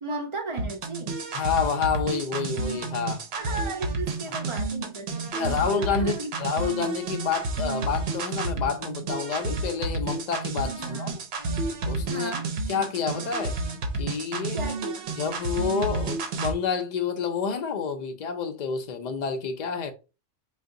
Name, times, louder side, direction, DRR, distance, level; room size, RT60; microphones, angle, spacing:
voice 1, 0.0-1.2 3.4-6.3 10.6-11.2 12.1-12.5 14.5-15.1, right 3 dB, 40° right, 0.5 m, -35 dB
sound 1, 0.6-16.6, right 3 dB, 65° right, 0.8 m, -31 dB
voice 2, 1.3-3.3 5.3-11.1 11.9-12.3 12.7-13.6 13.9-14.6 15.2-19.9, left 6 dB, 55° left, 0.5 m, -29 dB
2.7 x 2.3 x 3.6 m
omnidirectional pair, 1.2 m